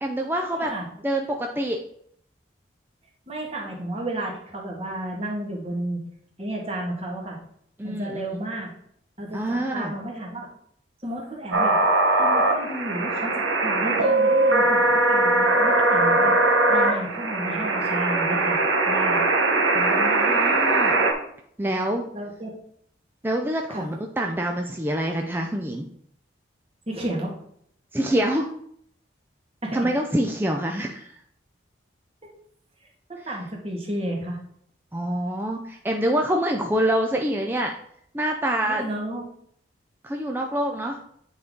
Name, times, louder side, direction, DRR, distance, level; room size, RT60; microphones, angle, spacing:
voice 1, 0.0-0.7 1.0-1.8 7.8-8.2 9.3-9.9 19.7-21.0 21.6-22.1 23.2-25.9 27.9-28.5 29.7-31.1 34.9-37.7 38.1-38.8 40.0-41.0, right 1 dB, 10° right, 2 dB, 0.4 m, -26 dB
voice 2, 0.5-0.8 3.3-6.0 6.4-7.4 7.8-8.7 9.2-10.5 11.0-11.8 12.2-18.6 18.9-19.2 22.1-22.5 23.7-23.9 26.9-27.4 29.6-29.9 32.8-34.4 38.6-39.2, right 1 dB, 30° right, -2 dB, 1.6 m, -32 dB
sound 1, 11.5-21.1, right 2 dB, 80° right, 1.0 m, -21 dB
9.3 x 3.9 x 3.6 m, 0.68 s
head